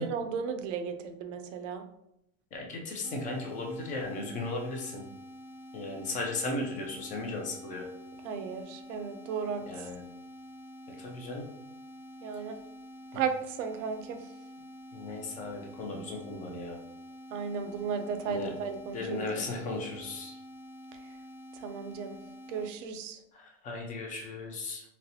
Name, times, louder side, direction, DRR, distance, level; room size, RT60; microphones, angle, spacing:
voice 1, 0.0-1.8 8.2-9.6 12.2-12.6 13.1-14.2 17.3-19.4 21.6-22.2 22.5-23.2, right 6 dB, 60° right, 8 dB, 0.6 m, -35 dB
voice 2, 2.5-5.0 5.7-7.9 9.6-10.0 11.0-11.4 14.9-16.8 18.2-18.5 18.9-20.4 23.3-24.8, left 2 dB, 20° left, 1 dB, 0.4 m, -36 dB
sound 1, 3.0-22.7, left 1 dB, 45° left, 0.8 m, -48 dB
4.0 x 2.0 x 2.8 m, 0.80 s
supercardioid pair, 135°, 42 cm